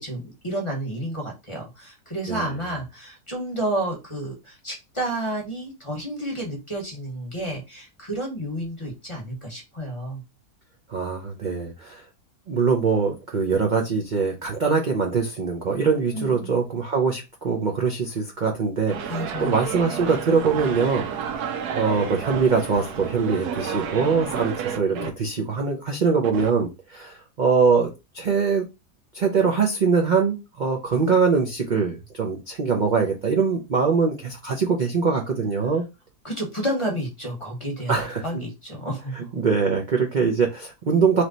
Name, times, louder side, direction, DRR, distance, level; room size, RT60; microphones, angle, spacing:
voice 1, 0.0-10.2 16.1-16.6 19.1-19.6 24.9-25.1 36.2-39.3, right 1 dB, 25° left, 0 dB, 0.9 m, -31 dB
voice 2, 10.9-12.1 12.5-21.1 21.4-28.6 29.1-35.8 37.9-38.4 39.2-41.2, right 5 dB, 55° right, 1 dB, 0.5 m, -23 dB
sound 1, 18.9-25.1 26.2-26.5, right 7 dB, 75° right, 1.1 m, -31 dB
3.2 x 3.1 x 3.9 m, 0.25 s
omnidirectional pair, 1.8 m